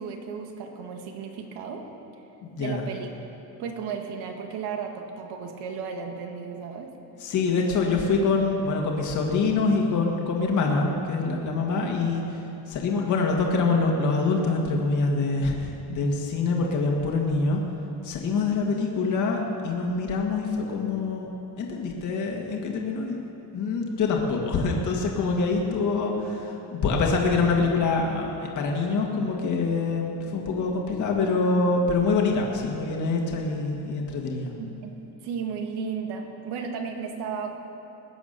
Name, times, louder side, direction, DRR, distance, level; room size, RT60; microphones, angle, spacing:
voice 1, 0.0-1.8 2.6-3.1 3.6-6.9 34.6-34.9 35.2-37.7, right 6 dB, 75° right, 3 dB, 1.9 m, -34 dB
voice 2, 2.4-2.9 7.2-12.4 12.7-17.6 18.0-23.2 23.5-34.5, left 3 dB, 50° left, 0 dB, 1.9 m, -25 dB
20.5 x 8.5 x 6.7 m, 2.9 s
cardioid pair, 155°, 39 cm